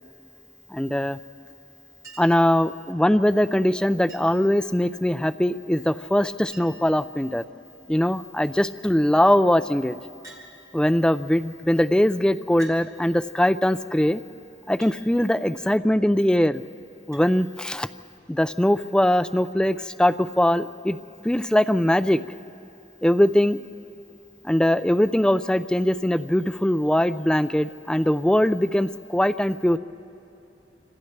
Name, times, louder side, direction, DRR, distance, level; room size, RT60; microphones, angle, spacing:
voice 1, 0.7-1.2 2.2-7.4 7.9-10.0 10.7-14.2 14.7-16.6 17.1-17.9 18.3-21.0 21.2-22.2 23.0-23.6 24.4-29.8, left 1 dB, 5° left, 10 dB, 0.4 m, -21 dB
Chink clink, 2.0-2.5 4.1-4.5 5.9-6.0 6.2-6.3 6.5-7.0 7.7-8.1 10.2-10.5 11.5-11.6 12.6-12.8 14.8-15.0 17.1-17.3 18.7-18.8, right 2 dB, 20° right, 3.8 m, -47 dB
29.5 x 26.5 x 3.3 m, 2.8 s
head